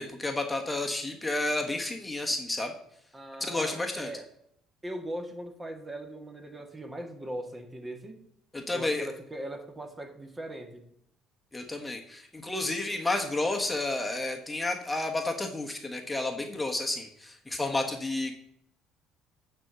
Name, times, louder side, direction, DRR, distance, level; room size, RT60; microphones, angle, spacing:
voice 1, 0.0-2.7 3.4-4.1 8.5-9.1 11.5-18.3, left 2 dB, 15° left, 3 dB, 1.3 m, -31 dB
voice 2, 3.1-4.3 4.8-8.3 8.7-10.8, right 1 dB, 20° right, 5 dB, 1.8 m, -40 dB
9.8 x 4.5 x 6.8 m, 0.74 s
supercardioid pair, 70°, 0 cm